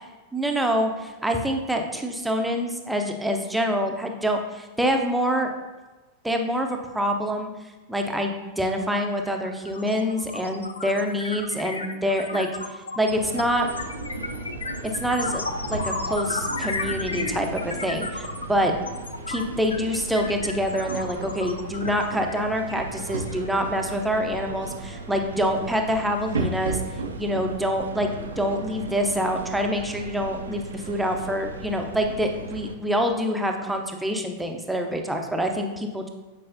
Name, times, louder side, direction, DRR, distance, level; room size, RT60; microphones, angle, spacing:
voice 1, 0.3-5.5 6.2-7.5 7.9-13.7 15.0-15.4 15.7-18.7 19.3-26.8 27.2-28.1 28.4-36.1, equal, 5° right, 3 dB, 0.7 m, -26 dB
sound 1, 8.7-8.8 9.1-23.5, left 3 dB, 75° left, 0.4 m, -33 dB
sound 2, 13.1-32.8, right 3 dB, 70° right, 0.5 m, -35 dB
8.4 x 4.8 x 2.7 m, 1.2 s
figure-of-eight pair, 90°, 0 cm